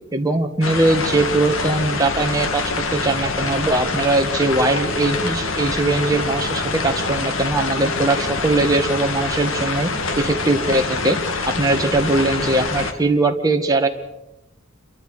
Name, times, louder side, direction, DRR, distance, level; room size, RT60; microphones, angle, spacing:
voice 1, 0.1-9.9 10.2-11.2 11.5-13.9, right 2 dB, 20° right, 2 dB, 1.7 m, -20 dB
sound 1, 0.6-12.9, left 3 dB, 80° left, 1.9 m, -25 dB
sound 2, 3.2-10.9, left 2 dB, 5° left, 4.8 m, -43 dB
28.0 x 24.0 x 5.0 m, 0.92 s
head